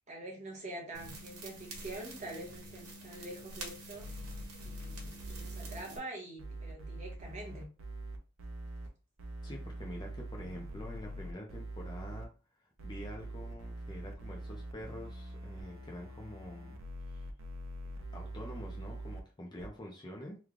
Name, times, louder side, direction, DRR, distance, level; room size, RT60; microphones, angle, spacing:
voice 1, 0.1-4.1 4.6-7.7, right 1 dB, 30° right, 1.0 m, -45 dB
sound 1, 0.9-6.0, right 2 dB, 85° right, 1.1 m, -47 dB
sound 2, 4.0-5.8 6.4-8.9 9.2-12.3 12.8-19.2 19.6-19.7, right 1 dB, 65° right, 0.6 m, -44 dB
voice 2, 9.4-12.3 12.8-16.8 17.1-17.3 18.1-20.4, left 1 dB, 20° left, 0.5 m, -46 dB
3.1 x 2.3 x 3.7 m
head